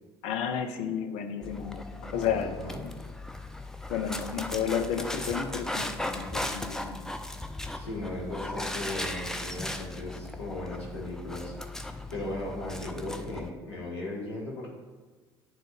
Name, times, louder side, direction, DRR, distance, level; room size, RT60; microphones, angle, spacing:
voice 1, 0.2-1.8 2.1-2.5 2.8-2.9 3.9-7.0, left 8 dB, 55° left, 6 dB, 0.6 m, -32 dB
Dog, 1.4-13.5, left 1 dB, 5° left, 0.5 m, -37 dB
voice 2, 2.1-2.8 7.7-14.7, left 1 dB, 80° left, -4 dB, 1.5 m, -37 dB
10.5 x 3.8 x 3.4 m, 1.4 s
figure-of-eight pair, 55°, 14 cm